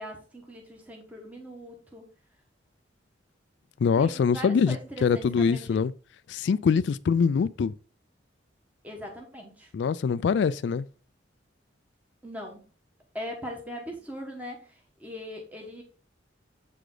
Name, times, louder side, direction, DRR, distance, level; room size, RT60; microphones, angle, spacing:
voice 1, 0.0-2.0 4.0-5.8 8.8-9.7 12.2-12.6 13.1-15.8, equal, 10° right, 1.1 m, -40 dB
voice 2, 3.8-4.8 5.0-5.9 6.3-7.7 9.7-10.9, left 6 dB, 65° left, 0.3 m, -23 dB
7.8 x 4.9 x 3.8 m
head